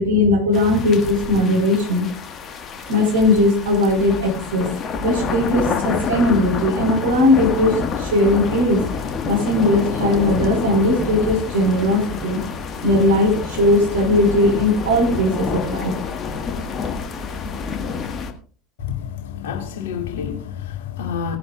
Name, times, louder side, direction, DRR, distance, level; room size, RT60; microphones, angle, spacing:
voice 1, 0.0-2.1 2.9-4.7 5.0-8.8 9.2-12.4 12.8-15.9, left 1 dB, 70° right, 4.6 m, -18 dB
sound 1, 0.5-18.3, left 5 dB, 30° left, 1.6 m, -28 dB
voice 2, 18.8-21.4, left 8 dB, 60° left, 2.4 m, -28 dB
19.5 x 10.5 x 2.4 m
figure-of-eight pair, 75°, 0 cm